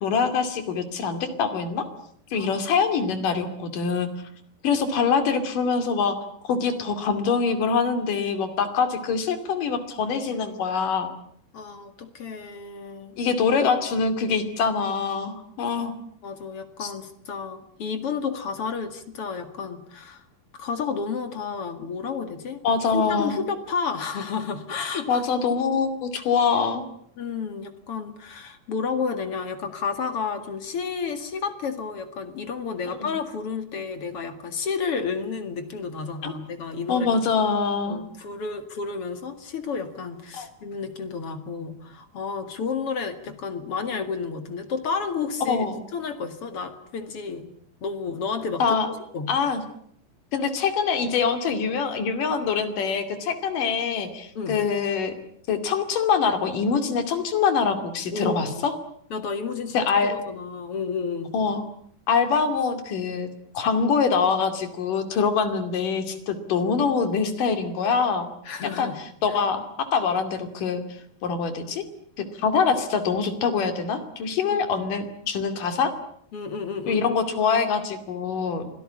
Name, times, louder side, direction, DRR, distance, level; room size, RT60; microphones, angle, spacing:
voice 1, 0.0-1.8 2.3-4.1 4.6-6.2 6.4-11.1 13.2-16.0 16.8-16.9 22.6-23.4 25.1-26.9 33.0-33.1 36.2-36.3 36.9-38.0 40.4-40.5 45.5-45.8 48.6-48.9 49.3-49.6 50.3-55.1 55.5-58.7 59.7-60.1 61.3-61.7 62.1-63.3 63.5-68.3 68.8-69.6 69.9-70.8 71.2-71.8 72.2-75.9 76.9-78.7, left 5 dB, 60° left, 9 dB, 4.1 m, -24 dB
voice 2, 11.5-13.1 16.2-20.2 20.5-22.6 22.9-25.2 27.2-37.1 37.8-47.5 47.8-48.8 49.1-49.3 54.3-54.6 58.1-58.6 59.1-61.3 68.5-69.0 69.3-69.4 74.4-74.6 76.3-77.0, left 5 dB, 45° left, 9 dB, 2.4 m, -31 dB
25.5 x 18.0 x 9.8 m, 0.66 s
omnidirectional pair, 4.4 m